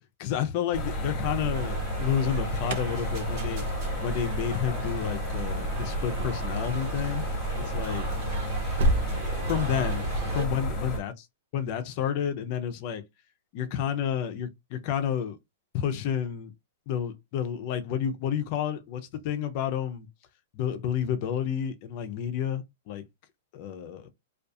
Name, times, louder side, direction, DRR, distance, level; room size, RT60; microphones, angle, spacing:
voice 1, 0.2-3.7 4.0-7.3 7.6-8.1 9.4-10.1 10.3-11.1 11.5-13.0 13.5-15.4 15.7-16.5 16.9-20.1 20.5-23.0 23.5-24.1, left 9 dB, 35° left, 0.5 m, -30 dB
sound 1, 0.7-11.0, equal, 20° left, 0.9 m, -31 dB
sound 2, 1.5-10.5, right 4 dB, 35° right, 0.9 m, -41 dB
Alarm, 2.0-9.1, right 1 dB, 50° right, 0.3 m, -34 dB
2.3 x 2.3 x 2.5 m
supercardioid pair, 175°, 0 cm